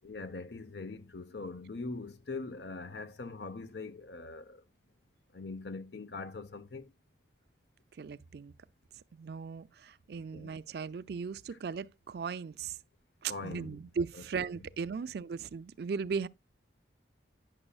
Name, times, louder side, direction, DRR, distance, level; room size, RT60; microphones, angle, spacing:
voice 1, 0.0-4.6 5.3-6.9 10.1-10.5 11.5-11.6 13.2-13.7 14.1-14.5, left 3 dB, 70° left, 0.8 m, -42 dB
voice 2, 8.0-8.5 9.1-12.8 13.2-16.3, right 5 dB, 60° right, 0.4 m, -37 dB
9.9 x 6.1 x 2.3 m
head